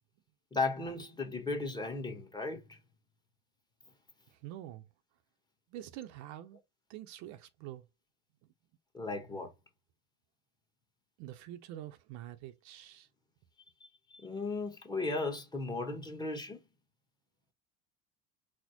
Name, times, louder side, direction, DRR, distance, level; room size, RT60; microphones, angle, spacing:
voice 1, 0.5-2.8 8.9-9.5 13.8-16.6, left 3 dB, 15° left, 1.1 m, -36 dB
voice 2, 4.4-4.8 5.7-6.6 6.9-7.8 11.2-13.1, right 13 dB, 70° right, 0.6 m, -46 dB
4.2 x 2.1 x 2.8 m
supercardioid pair, 100°, 30 cm